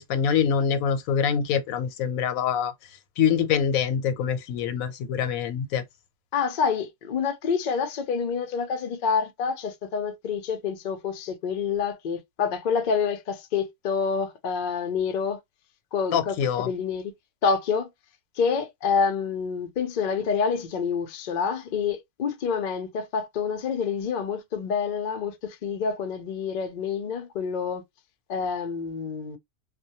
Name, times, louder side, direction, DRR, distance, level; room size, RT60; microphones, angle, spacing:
voice 1, 0.0-2.7 3.2-5.8 16.1-16.7, left 7 dB, 85° left, 1.0 m, -25 dB
voice 2, 6.3-15.4 15.9-17.1 17.4-17.9 18.4-27.8 28.3-29.4, left 6 dB, 60° left, 0.5 m, -27 dB
2.2 x 2.1 x 2.8 m
omnidirectional pair, 1.4 m